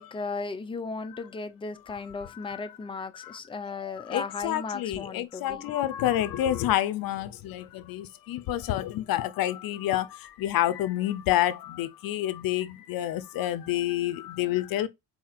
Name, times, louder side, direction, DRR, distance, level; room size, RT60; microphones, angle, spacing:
voice 1, 0.0-5.6, left 4 dB, 15° left, 0.5 m, -36 dB
voice 2, 2.2-2.6 3.1-3.4 3.8-14.9, left 13 dB, 80° left, 0.5 m, -29 dB
4.2 x 2.8 x 2.3 m
cardioid pair, 90°, 34 cm